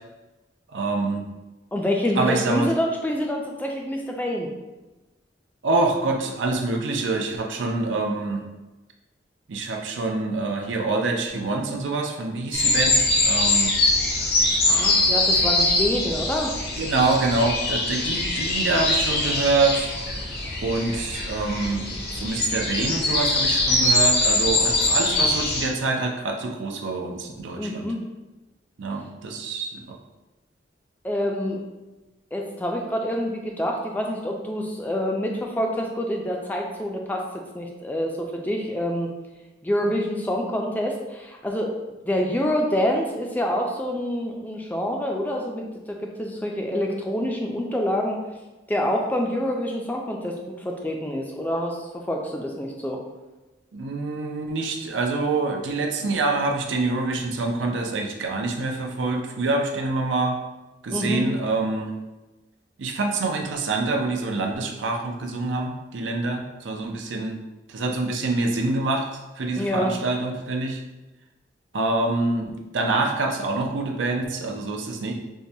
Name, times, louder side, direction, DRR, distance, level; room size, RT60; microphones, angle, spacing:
voice 1, 0.7-1.2 2.2-2.7 5.6-8.4 9.5-13.8 16.8-19.9 20.6-27.9 28.8-30.0 53.7-60.4 60.8-61.9 62.8-67.4 67.7-70.8 71.7-72.4 72.7-75.1, right 3 dB, 90° right, 2 dB, 0.5 m, -26 dB
voice 2, 1.7-4.5 14.6-16.5 27.5-28.0 31.0-31.6 32.3-39.1 39.6-41.8 42.0-48.2 48.7-53.0 60.9-61.2 69.6-69.9, equal, 10° left, 1 dB, 0.3 m, -27 dB
sound 1, 12.5-25.7, left 2 dB, 55° left, 0.6 m, -23 dB
4.5 x 2.2 x 2.7 m, 1.1 s
head